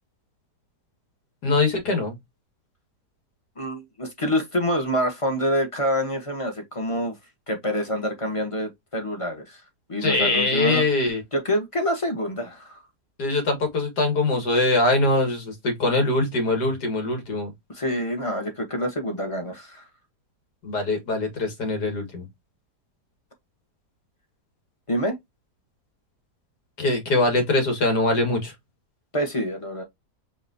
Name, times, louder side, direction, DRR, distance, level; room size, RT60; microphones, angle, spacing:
voice 1, 1.4-2.2 10.0-11.2 13.2-17.5 20.6-22.3 26.8-28.5, left 2 dB, 75° left, 2.1 m, -23 dB
voice 2, 3.6-7.1 7.5-9.6 9.9-10.8 11.3-12.8 17.7-19.8 24.9-25.2 29.1-29.8, equal, 20° left, 1.0 m, -26 dB
5.3 x 3.0 x 2.6 m
omnidirectional pair, 1.8 m